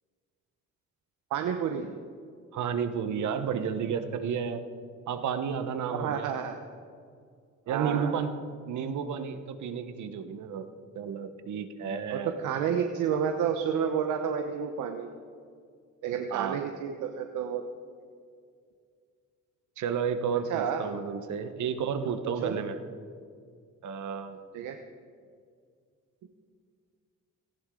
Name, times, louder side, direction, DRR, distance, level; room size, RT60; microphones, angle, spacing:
voice 1, 1.3-1.9 5.9-6.6 7.7-8.2 12.1-15.1 16.0-17.6 20.5-20.8 22.2-22.5 24.5-24.8, right 8 dB, 90° right, 5 dB, 0.9 m, -30 dB
voice 2, 2.5-4.6 5.1-6.3 7.7-8.3 8.7-10.7 10.9-12.3 16.3-16.6 19.8-22.8 23.8-24.4, right 7 dB, 75° right, 9 dB, 1.2 m, -31 dB
18.5 x 15.5 x 3.8 m, 2.2 s
cardioid pair, 90°, 30 cm